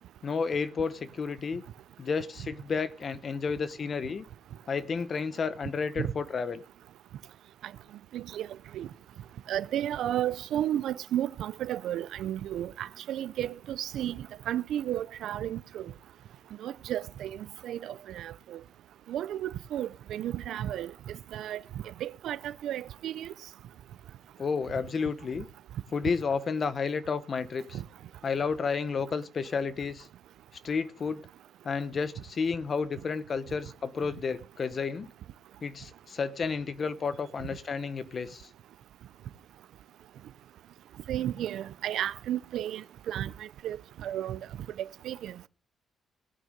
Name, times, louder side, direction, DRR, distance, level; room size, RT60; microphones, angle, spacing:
voice 1, 0.2-1.6 2.0-4.2 4.7-6.6 24.4-25.5 25.9-27.8 28.2-30.1 30.6-31.3 31.6-35.1 35.6-38.4, left 5 dB, 30° left, 0.9 m, -31 dB
voice 2, 8.1-8.5 8.7-8.9 9.5-15.8 16.6-18.6 19.1-21.6 22.0-23.3 27.7-27.8 41.1-44.4 44.8-45.5, right 11 dB, 70° right, 0.6 m, -33 dB
17.5 x 9.4 x 5.3 m
cardioid pair, 180°, 0 cm